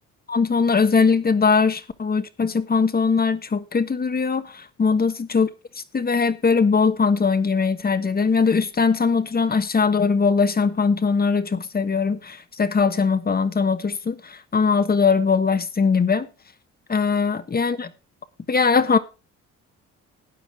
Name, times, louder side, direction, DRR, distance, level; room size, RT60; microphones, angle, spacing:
voice 1, 0.3-4.4 4.8-5.5 5.9-16.3 16.9-17.9 18.5-19.0, left 5 dB, 30° left, 1.3 m, -20 dB
13.0 x 9.4 x 3.6 m
cardioid pair, 90°, 30 cm